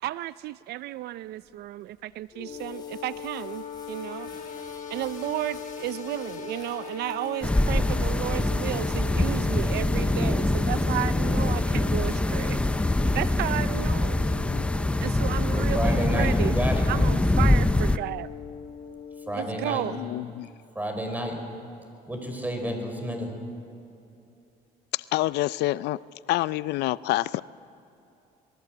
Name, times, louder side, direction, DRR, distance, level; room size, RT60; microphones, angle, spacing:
voice 1, 0.0-4.3 4.6-12.6 13.1-14.2 15.0-16.6 16.9-18.3 19.3-20.0, right 15 dB, 75° right, 16 dB, 0.5 m, -33 dB
sound 1, 1.3-16.2, left 3 dB, 25° left, 7.0 m, -54 dB
sound 2, 2.3-20.0, left 7 dB, 50° left, 3.5 m, -40 dB
sound 3, 7.4-18.0, left 1 dB, 5° left, 0.6 m, -24 dB
voice 2, 15.5-16.9 19.3-19.9 20.7-21.4 22.1-23.3, equal, 10° right, 4 dB, 5.2 m, -31 dB
voice 3, 20.0-20.5 24.9-26.0 26.3-27.4, left 16 dB, 80° left, 18 dB, 0.5 m, -27 dB
26.5 x 21.0 x 7.9 m, 2.8 s
cardioid pair, 110°, 17 cm